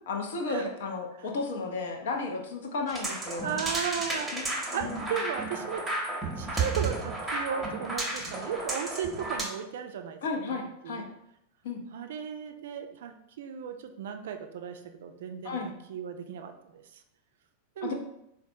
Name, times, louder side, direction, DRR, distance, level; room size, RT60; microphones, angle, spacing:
voice 1, 0.1-3.6 4.3-5.1 10.2-11.1 11.6-11.8 15.4-15.7 17.8-17.9, left 4 dB, 60° left, 2 dB, 0.6 m, -34 dB
sound 1, 2.9-9.4, right 3 dB, 10° right, 0.8 m, -33 dB
voice 2, 3.4-5.8 6.4-10.2 10.5-10.6 10.8-11.0 11.9-17.0 17.8-17.9, right 7 dB, 55° right, 6 dB, 0.3 m, -35 dB
4.1 x 2.1 x 2.6 m, 0.81 s
figure-of-eight pair, 90°, 0 cm